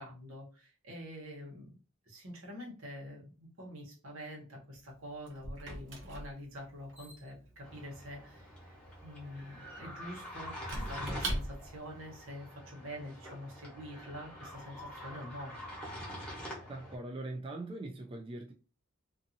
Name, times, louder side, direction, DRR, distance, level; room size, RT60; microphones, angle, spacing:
voice 1, 0.0-1.8 2.1-8.7 9.0-15.5, equal, 90° right, 1.2 m, -46 dB
Squeak / Wood, 4.7-11.9, right 1 dB, 65° right, 0.8 m, -43 dB
sound 1, 7.6-17.0, equal, 5° left, 1.0 m, -46 dB
voice 2, 16.7-18.5, right 2 dB, 25° right, 0.4 m, -41 dB
2.6 x 2.6 x 2.6 m
head